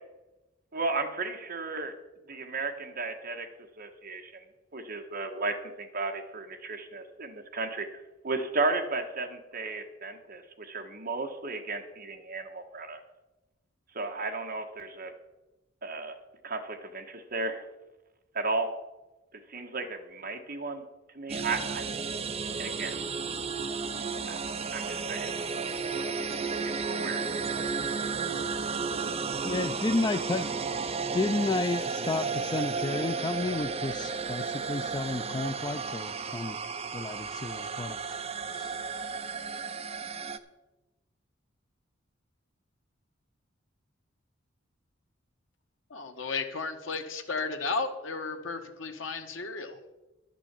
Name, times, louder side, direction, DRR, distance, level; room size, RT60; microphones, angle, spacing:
voice 1, 0.7-1.9 2.3-4.4 4.7-13.0 13.9-15.1 15.8-16.2 16.4-17.6 18.3-18.7 19.5-20.8 21.1-21.9 22.6-23.0 24.3-24.4 24.7-25.4 26.6-27.2, right 3 dB, 50° right, 3 dB, 1.5 m, -34 dB
sound 1, 21.3-40.4, right 5 dB, 35° right, 0.6 m, -33 dB
voice 2, 29.4-30.5 31.1-36.6 36.9-38.0 38.5-38.8, left 3 dB, 20° left, 10 dB, 0.4 m, -31 dB
voice 3, 45.9-49.7, left 4 dB, 85° left, 6 dB, 1.3 m, -34 dB
12.0 x 6.1 x 8.3 m, 1.1 s
head